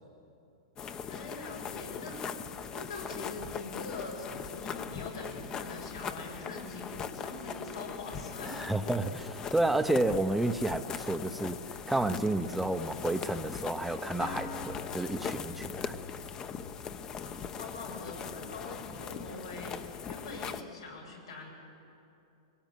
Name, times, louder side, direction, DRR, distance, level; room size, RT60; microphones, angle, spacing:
sound 1, 0.8-20.6, left 7 dB, 25° left, 1.0 m, -40 dB
voice 1, 1.1-2.4 2.7-8.6 17.2-21.5, left 2 dB, 90° left, 0 dB, 7.8 m, -43 dB
voice 2, 8.4-16.0, right 2 dB, 5° right, 9 dB, 0.9 m, -31 dB
Acoustic guitar, 14.2-18.0, left 5 dB, 70° left, 3.1 m, -45 dB
22.5 x 18.5 x 9.3 m, 2.7 s
hypercardioid pair, 130°, 3 cm